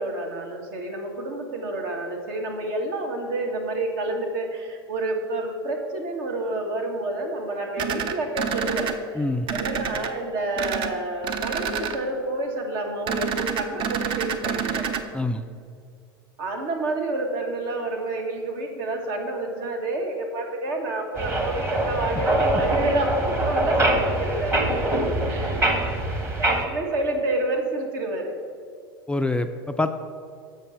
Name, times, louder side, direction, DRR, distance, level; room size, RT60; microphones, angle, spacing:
voice 1, 0.0-14.9 16.4-24.7 25.3-25.7 25.9-26.0 26.4-28.4, right 2 dB, 65° right, 2 dB, 1.4 m, -29 dB
sound 1, 7.8-8.9 9.5-10.1 10.6-10.9 11.2-12.0 13.1-15.0, right 7 dB, 40° right, 0.6 m, -28 dB
voice 2, 9.2-9.5 15.1-15.5 29.1-29.9, left 2 dB, 10° left, 7 dB, 0.3 m, -25 dB
sound 2, 21.1-26.6, right 1 dB, 20° right, 1.1 m, -24 dB
7.1 x 5.2 x 5.6 m, 2.2 s
hypercardioid pair, 90°, 13 cm